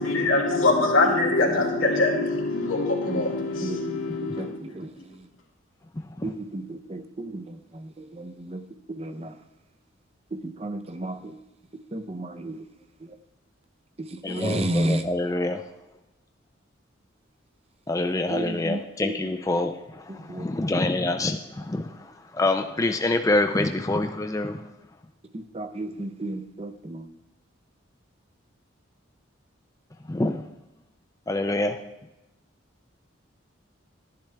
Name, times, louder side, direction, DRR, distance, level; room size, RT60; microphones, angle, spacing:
voice 1, 0.0-4.6, left 2 dB, 90° left, -1 dB, 2.3 m, -23 dB
voice 2, 1.5-2.4 3.1-3.3 3.6-5.3 6.2-8.6 8.9-9.4 10.3-11.4 11.9-12.7 13.0-13.2 14.0-15.0 18.3-19.1 20.1-20.8 25.3-27.1, right 1 dB, 30° right, 9 dB, 0.6 m, -33 dB
voice 3, 5.9-6.3 14.2-15.7 17.9-24.7 30.1-30.4 31.3-31.8, left 2 dB, 15° left, 6 dB, 0.4 m, -26 dB
12.0 x 10.5 x 3.3 m, 0.97 s
head